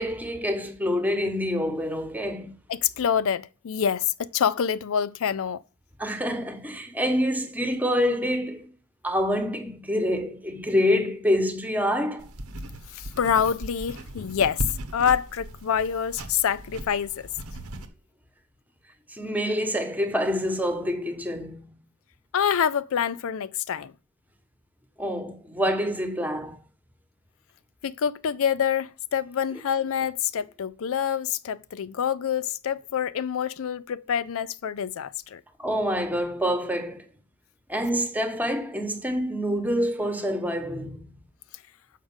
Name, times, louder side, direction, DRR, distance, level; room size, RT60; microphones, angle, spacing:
voice 1, 0.0-2.5 6.0-8.7 9.0-12.3 19.1-21.8 25.0-26.6 35.6-37.0 37.7-41.2, equal, 10° right, 1.1 m, -26 dB
voice 2, 2.7-5.6 12.9-14.6 14.9-17.3 22.3-23.9 27.8-35.4, left 8 dB, 65° left, 0.4 m, -26 dB
sound 1, 12.2-17.9, right 1 dB, 75° right, 1.2 m, -37 dB
7.4 x 5.1 x 7.1 m
head